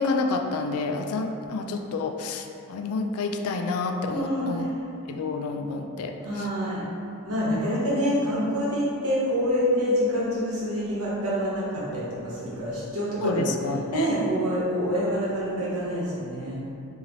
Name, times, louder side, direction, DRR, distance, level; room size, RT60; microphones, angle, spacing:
voice 1, 0.0-4.7 5.1-6.5 13.2-14.2, left 3 dB, 80° left, 5 dB, 0.3 m, -29 dB
voice 2, 4.1-4.8 6.2-6.8 7.2-13.5 13.9-16.7, equal, 90° right, -7 dB, 1.1 m, -26 dB
4.0 x 2.8 x 3.0 m, 2.7 s
head